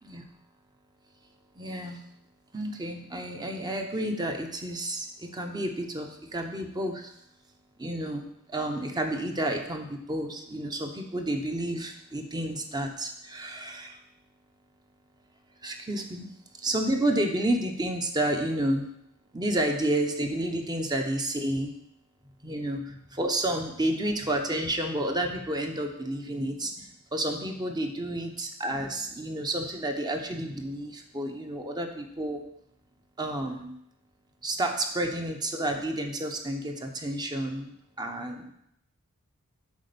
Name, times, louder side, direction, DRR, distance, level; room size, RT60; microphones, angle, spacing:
voice 1, 1.6-2.0 2.5-7.1 7.8-14.0 15.6-16.3 16.6-18.8 19.3-21.7 22.4-32.4 33.2-33.7 34.4-38.5, right 1 dB, 20° right, 4 dB, 0.8 m, -30 dB
8.3 x 4.3 x 6.8 m, 0.76 s
head